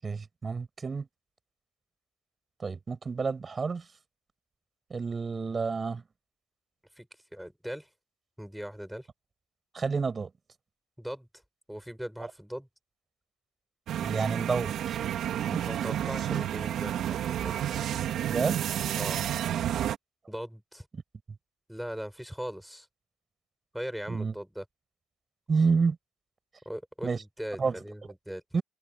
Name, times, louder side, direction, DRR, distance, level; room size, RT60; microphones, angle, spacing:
voice 1, 0.0-1.1 2.6-3.9 4.9-6.0 9.7-10.3 14.0-15.0 15.5-15.6 18.3-18.6 20.9-21.0 24.1-24.3 25.5-26.0 27.0-27.2 27.6-27.8 28.5-28.6, right 5 dB, 25° right, 7.9 m, -29 dB
voice 2, 7.3-7.9 8.4-9.1 11.0-11.3 11.7-12.7 15.7-17.8 19.0-19.2 20.3-20.9 21.7-22.9 23.7-24.6 26.7-28.4, equal, ahead, 7.0 m, -39 dB
sound 1, 13.9-20.0, right 11 dB, 50° right, 3.4 m, -30 dB
cardioid pair, 120°, 0 cm